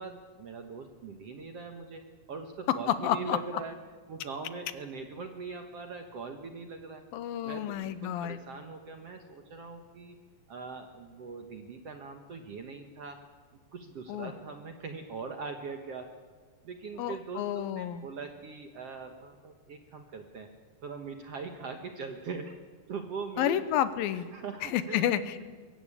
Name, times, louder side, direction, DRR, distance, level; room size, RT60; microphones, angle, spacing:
voice 1, 0.0-2.0 2.3-3.8 4.1-7.0 7.4-10.2 10.5-13.2 13.7-16.1 16.6-20.5 20.8-22.5 22.9-23.6 24.3-25.0, right 4 dB, 60° right, 5 dB, 1.8 m, -41 dB
voice 2, 2.9-3.4 7.1-8.4 14.1-14.3 17.0-18.0 23.4-24.3 24.6-25.4, left 11 dB, 80° left, 13 dB, 2.6 m, -30 dB
23.0 x 16.0 x 8.6 m, 1.5 s
omnidirectional pair, 4.2 m